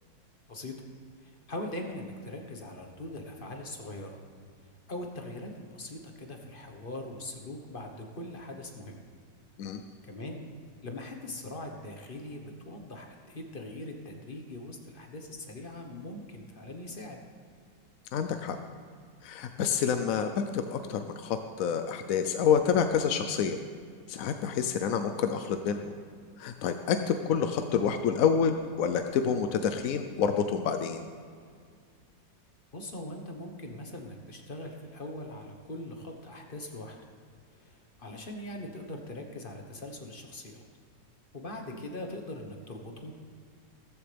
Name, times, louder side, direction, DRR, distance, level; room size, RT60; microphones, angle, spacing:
voice 1, 1.2-4.2 4.9-9.0 10.0-10.5 10.8-17.2 32.7-37.0 37.6-40.6 41.3-43.1, left 1 dB, 35° left, 3 dB, 1.2 m, -41 dB
voice 2, 18.1-18.6 19.2-23.6 24.1-25.8 26.4-31.0, left 7 dB, 65° left, 7 dB, 0.8 m, -28 dB
15.0 x 14.5 x 3.4 m, 2.1 s
omnidirectional pair, 2.0 m